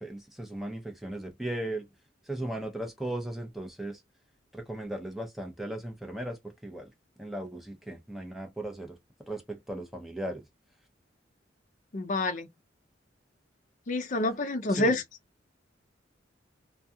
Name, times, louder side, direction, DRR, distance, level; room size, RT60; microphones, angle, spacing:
voice 1, 0.0-1.9 2.3-4.0 4.5-6.9 7.2-9.0 9.3-10.4 14.7-14.9, right 1 dB, ahead, 0.6 m, -37 dB
voice 2, 11.9-12.5 13.9-15.0, left 2 dB, 40° left, 0.5 m, -28 dB
2.3 x 2.3 x 2.7 m
head